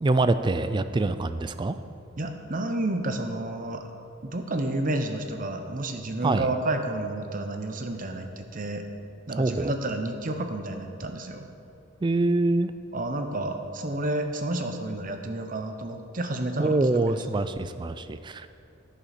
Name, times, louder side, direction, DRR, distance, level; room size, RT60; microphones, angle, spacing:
voice 1, 0.0-1.8 6.2-6.5 9.4-9.7 12.0-12.7 16.6-18.5, right 2 dB, 20° right, 12 dB, 0.3 m, -25 dB
voice 2, 2.2-3.9 4.2-8.8 9.3-11.5 12.9-16.8, right 2 dB, 40° right, 6 dB, 0.8 m, -30 dB
11.0 x 10.0 x 4.3 m, 2.6 s
head